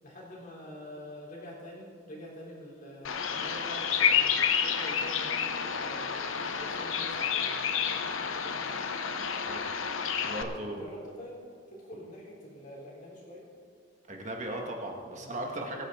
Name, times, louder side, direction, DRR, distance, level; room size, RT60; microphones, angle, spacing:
voice 1, 0.0-8.8 10.7-11.4 11.7-13.5 15.1-15.4, left 1 dB, 40° left, -3 dB, 3.2 m, -46 dB
Bird vocalization bird call bird song, 3.0-10.4, left 7 dB, 85° left, 0.9 m, -30 dB
voice 2, 10.2-10.9 14.1-15.9, right 1 dB, 35° right, 0 dB, 1.9 m, -37 dB
22.5 x 9.5 x 3.9 m, 2.1 s
head